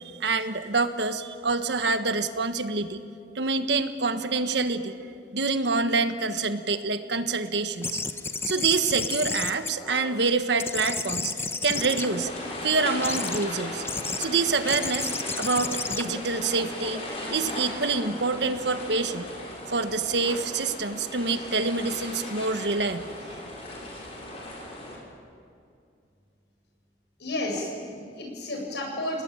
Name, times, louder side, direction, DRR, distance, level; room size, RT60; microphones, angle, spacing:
voice 1, 0.2-3.0 3.3-5.0 5.3-8.0 8.4-12.3 12.6-13.8 14.2-17.0 17.3-19.3 19.7-23.2, right 4 dB, 70° right, 9 dB, 1.4 m, -26 dB
sound 1, 7.8-10.2 10.6-12.5 13.0-13.5 13.8-14.3 14.7-17.2, left 4 dB, 15° left, 0.8 m, -32 dB
sound 2, 11.7-25.0, left 1 dB, 35° left, 6.4 m, -37 dB
voice 2, 27.2-29.2, left 1 dB, 65° left, 1 dB, 8.0 m, -32 dB
29.5 x 19.5 x 9.0 m, 2.4 s
head